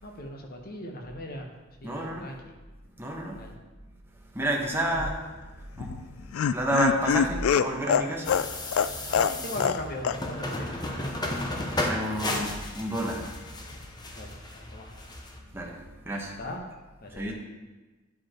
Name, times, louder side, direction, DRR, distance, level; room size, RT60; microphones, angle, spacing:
voice 1, 0.0-1.5 1.8-2.4 3.4-3.5 4.9-5.0 9.1-10.7 14.1-14.9 16.4-16.6 17.0-17.3, left 1 dB, 45° left, 2 dB, 1.1 m, -39 dB
voice 2, 1.8-2.3 3.0-3.4 4.3-5.2 5.5-8.4 8.8-9.1 11.5-13.3 15.5-16.4 17.1-17.3, right 1 dB, 10° right, -1 dB, 1.1 m, -31 dB
Laughter, 5.8-9.8 10.0-10.2 10.5-10.6, left 7 dB, 90° left, 0.3 m, -25 dB
sound 1, 8.2-15.4, left 1 dB, 20° left, 0.8 m, -34 dB
9.7 x 5.3 x 4.4 m, 1.2 s
head